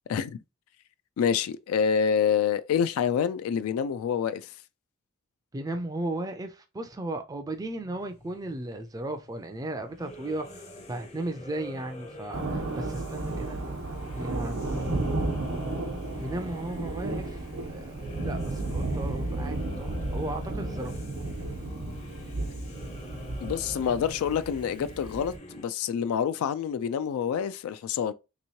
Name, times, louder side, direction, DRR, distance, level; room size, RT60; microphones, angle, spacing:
voice 1, 1.2-4.5 23.4-28.1, left 7 dB, 80° left, 0.3 m, -27 dB
voice 2, 5.5-10.6 10.9-13.6 14.1-15.2 16.2-21.0, right 1 dB, 15° right, 0.4 m, -36 dB
Dreamerion - Epic Dark, 7.5-25.7, left 1 dB, 30° left, 0.6 m, -46 dB
Thunder, 12.3-25.4, right 2 dB, 85° right, 0.9 m, -33 dB
3.4 x 3.0 x 2.7 m
head